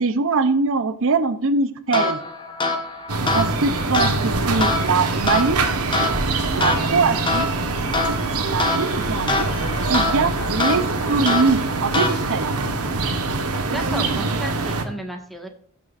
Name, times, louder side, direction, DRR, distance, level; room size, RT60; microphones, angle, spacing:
voice 1, 0.0-2.2 3.3-5.6 6.5-7.5 8.4-9.5 9.9-12.5, right 4 dB, 60° right, 12 dB, 0.6 m, -22 dB
sound 1, 1.9-12.6, left 2 dB, 20° left, 1.3 m, -26 dB
sound 2, 3.1-14.8, right 3 dB, 85° right, 1.3 m, -24 dB
voice 2, 13.7-15.5, right 1 dB, ahead, 3 dB, 1.5 m, -33 dB
16.5 x 6.1 x 2.5 m, 0.63 s
head